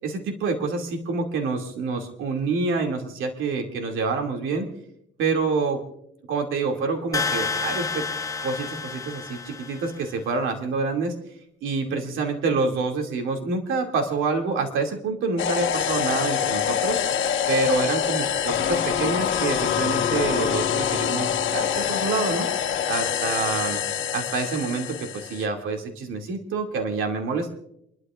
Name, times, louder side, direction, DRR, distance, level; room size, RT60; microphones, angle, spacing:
voice 1, 0.0-4.7 5.2-5.8 6.3-8.1 8.4-11.2 11.6-17.0 17.5-22.5 22.9-23.8 24.1-27.5, right 4 dB, 90° right, 3 dB, 2.5 m, -27 dB
sound 1, 7.1-10.0, left 4 dB, 15° left, 1.1 m, -29 dB
sound 2, 15.4-25.4, left 9 dB, 75° left, 1.4 m, -25 dB
28.5 x 12.5 x 2.5 m, 0.75 s
cardioid pair, 90°, 20 cm